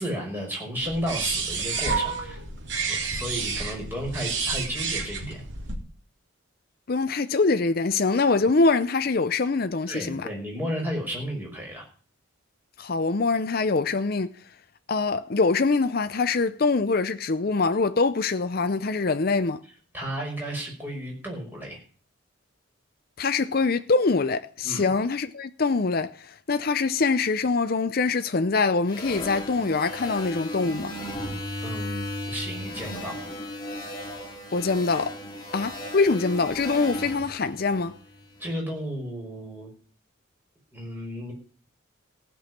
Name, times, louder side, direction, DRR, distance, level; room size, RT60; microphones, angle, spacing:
voice 1, 0.0-2.4 2.8-5.4 9.9-11.8 19.9-21.8 24.6-24.9 31.6-33.3 38.4-39.7 40.7-41.3, equal, 10° right, 5.6 m, -33 dB
sound 1, 0.8-5.8, right 4 dB, 60° right, 3.3 m, -30 dB
voice 2, 6.9-10.3 12.8-14.3 14.9-19.6 23.2-30.9 34.5-35.2 35.5-38.0, left 4 dB, 50° left, 0.6 m, -24 dB
sound 2, 28.9-38.3, left 1 dB, 20° left, 2.7 m, -36 dB
15.5 x 6.2 x 9.7 m
head